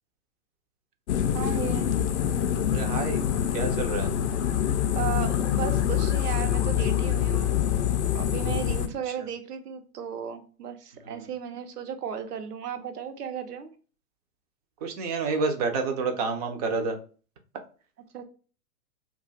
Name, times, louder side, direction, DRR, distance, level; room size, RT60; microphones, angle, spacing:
sound 1, 1.1-8.9, left 10 dB, 50° left, 0.5 m, -25 dB
voice 1, 1.3-1.9 4.9-7.8 8.1-13.7 18.1-18.2, right 8 dB, 80° right, 7 dB, 0.8 m, -35 dB
voice 2, 2.7-3.2 3.5-4.1 11.1-11.3 14.8-17.0, right 4 dB, 25° right, 4 dB, 0.5 m, -29 dB
2.4 x 2.4 x 3.9 m, 0.38 s
hypercardioid pair, 120°, 46 cm